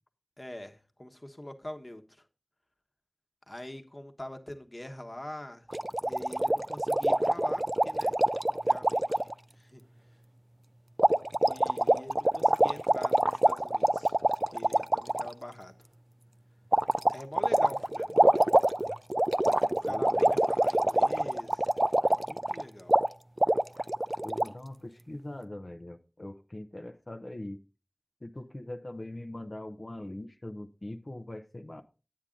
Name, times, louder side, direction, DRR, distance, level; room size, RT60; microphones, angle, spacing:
voice 1, 0.4-2.0 3.5-5.7 6.0-8.2 8.5-9.3 9.6-9.8 11.4-14.1 14.5-15.8 17.1-18.5 19.6-22.9, left 1 dB, 35° left, 1.2 m, -44 dB
sound 1, 5.7-9.3 11.0-15.3 16.7-22.6 22.9-23.1 23.4-24.4, right 1 dB, 30° right, 0.4 m, -25 dB
voice 2, 19.8-20.4 24.2-27.6 28.2-31.8, left 1 dB, 50° left, 0.7 m, -42 dB
9.7 x 8.6 x 3.8 m
wide cardioid pair, 50°, 0 cm